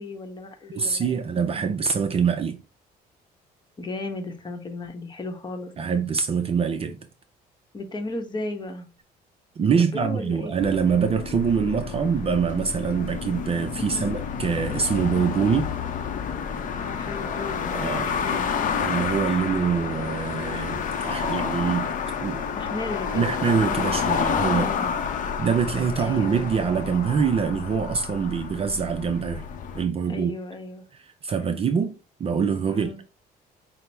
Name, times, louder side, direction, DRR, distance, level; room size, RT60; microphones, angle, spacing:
voice 1, 0.0-1.2 3.8-5.7 7.7-8.9 9.8-10.5 13.8-14.2 16.8-18.5 22.5-23.4 24.5-25.0 26.0-26.4 30.1-30.8 31.8-31.9 32.7-33.0, left 2 dB, 25° left, 0.9 m, -35 dB
voice 2, 0.7-2.6 5.8-7.0 9.6-15.7 17.7-18.2 18.8-22.0 22.2-22.4 23.1-24.7 25.4-29.5 29.7-30.3 31.2-33.0, right 6 dB, 35° right, 0.4 m, -24 dB
sound 1, 10.6-29.8, left 6 dB, 50° left, 0.6 m, -29 dB
5.8 x 2.0 x 3.3 m
cardioid pair, 110°, 17 cm